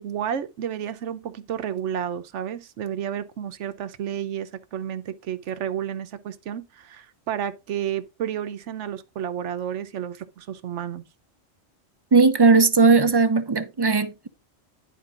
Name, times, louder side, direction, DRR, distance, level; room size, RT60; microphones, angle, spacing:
voice 1, 0.0-11.0, right 9 dB, 80° right, 1.1 m, -31 dB
voice 2, 12.1-14.3, right 4 dB, 40° right, 0.3 m, -18 dB
10.5 x 4.4 x 3.7 m
omnidirectional pair, 1.2 m